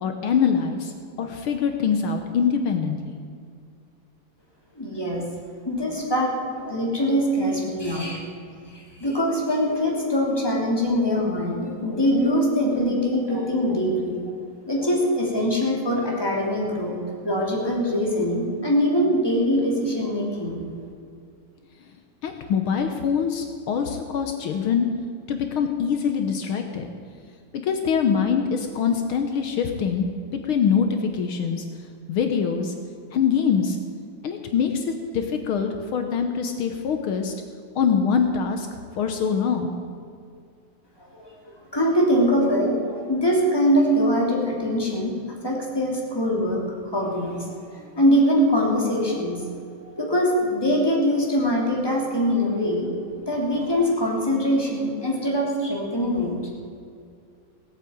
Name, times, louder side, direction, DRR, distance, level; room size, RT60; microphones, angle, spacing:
voice 1, 0.0-3.2 22.2-24.9 25.3-26.9 27.5-30.1 30.3-31.6 32.1-32.7 33.1-33.8 34.2-37.3 37.8-38.7 39.0-39.7, left 6 dB, 75° left, 5 dB, 1.8 m, -24 dB
voice 2, 4.8-5.2 5.6-8.2 8.7-14.2 14.7-20.6 41.1-41.3 41.7-45.2 45.4-52.9 53.3-56.5, equal, 10° left, -2 dB, 3.0 m, -23 dB
17.5 x 8.5 x 8.7 m, 2.3 s
omnidirectional pair, 2.4 m